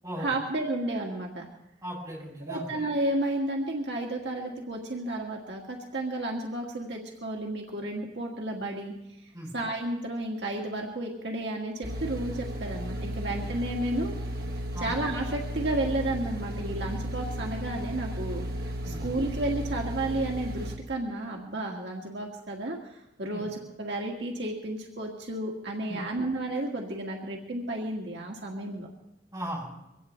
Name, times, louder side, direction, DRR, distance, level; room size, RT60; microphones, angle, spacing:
voice 1, 0.2-1.5 2.5-8.9 9.5-14.1 14.8-18.4 18.8-28.9, right 1 dB, 75° right, 0 dB, 1.9 m, -32 dB
voice 2, 1.8-2.7 9.3-9.5 14.7-14.9 18.8-19.0 23.3-23.4 25.9-26.0 29.3-29.6, equal, 20° right, -5 dB, 7.4 m, -37 dB
sound 1, 11.8-20.8, equal, 55° right, 1.4 m, -34 dB
23.0 x 17.0 x 3.2 m, 0.89 s
head